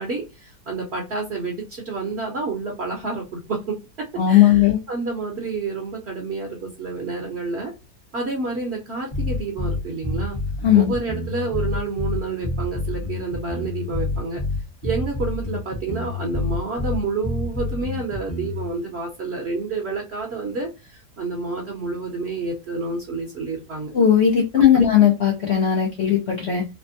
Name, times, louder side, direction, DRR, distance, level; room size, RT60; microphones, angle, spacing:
voice 1, 0.0-7.7 8.1-10.4 10.7-14.4 14.8-23.9 24.7-24.8, right 3 dB, 45° right, 1.0 m, -29 dB
voice 2, 4.2-4.8 10.6-10.9 23.9-26.7, left 9 dB, 60° left, 0.7 m, -17 dB
sound 1, 9.1-18.7, left 2 dB, 25° left, 0.8 m, -28 dB
3.3 x 2.1 x 2.5 m
omnidirectional pair, 1.8 m